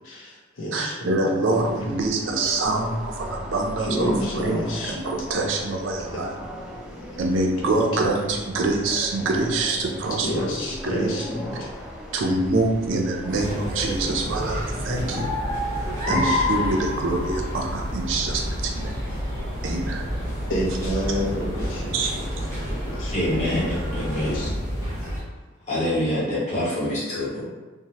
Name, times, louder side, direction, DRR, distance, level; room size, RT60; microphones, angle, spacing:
voice 1, 0.0-1.1 1.5-1.9 3.8-5.0 6.1-7.2 7.6-7.7 10.2-11.7 14.9-15.4 16.1-16.4 20.5-22.3 22.7-23.1 23.4-23.8 24.1-24.5, equal, 85° left, -3 dB, 0.7 m, -30 dB
voice 2, 0.7-6.3 7.2-10.5 10.8-11.1 12.1-15.3 16.1-19.0 19.6-20.1 21.9-22.3, right 2 dB, 75° right, 1 dB, 0.4 m, -25 dB
sound 1, 1.5-13.7, equal, 5° right, 0.3 m, -39 dB
sound 2, 13.3-25.2, left 1 dB, 15° left, 0.8 m, -29 dB
sound 3, 13.9-24.5, equal, 70° left, 1.1 m, -36 dB
voice 3, 23.1-24.4 25.7-27.5, left 1 dB, 35° left, -8 dB, 1.0 m, -26 dB
2.8 x 2.1 x 2.9 m, 1.2 s
head